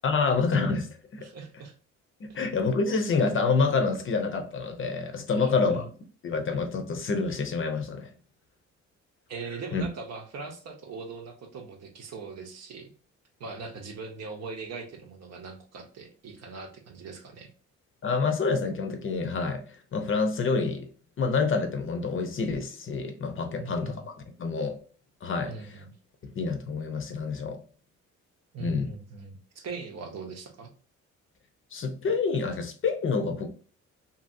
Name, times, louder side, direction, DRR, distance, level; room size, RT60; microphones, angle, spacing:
voice 1, 0.0-1.3 2.2-5.9 6.2-8.1 9.7-9.9 18.0-20.9 21.2-24.1 24.4-24.8 25.2-25.8 26.2-27.6 28.6-28.9 31.7-33.5, left 4 dB, 45° left, 0.6 m, -27 dB
voice 2, 1.2-1.7 5.3-5.8 9.3-12.9 13.4-17.5 23.5-24.0 25.5-25.9 28.5-30.7, right 4 dB, 60° right, 0.8 m, -40 dB
2.7 x 2.6 x 2.5 m
cardioid pair, 90°, 30 cm